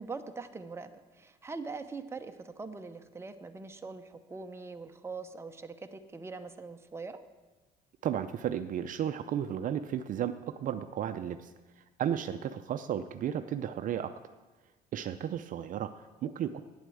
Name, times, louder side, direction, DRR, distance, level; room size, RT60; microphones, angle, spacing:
voice 1, 0.0-7.2, right 4 dB, 15° right, 6 dB, 0.8 m, -42 dB
voice 2, 8.0-14.1 14.9-16.6, right 9 dB, 50° right, 10 dB, 0.5 m, -34 dB
9.3 x 8.1 x 7.7 m, 1.3 s
cardioid pair, 110°, 17 cm